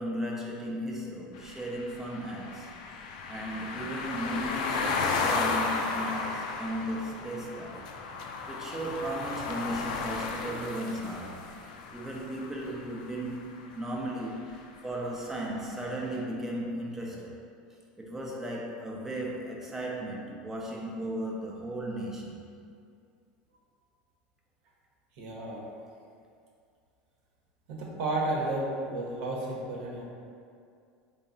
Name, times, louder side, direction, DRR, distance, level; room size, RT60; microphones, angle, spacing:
voice 1, 0.0-2.7 3.0-7.8 8.2-13.5 13.7-17.4 18.0-22.4, right 1 dB, 10° right, -2 dB, 0.5 m, -36 dB
sound 1, 1.4-13.4, left 4 dB, 80° left, 0.3 m, -34 dB
voice 2, 25.2-25.6 27.7-30.0, right 2 dB, 70° right, -3 dB, 0.7 m, -32 dB
3.4 x 2.0 x 3.8 m, 2.3 s
supercardioid pair, 130°, 4 cm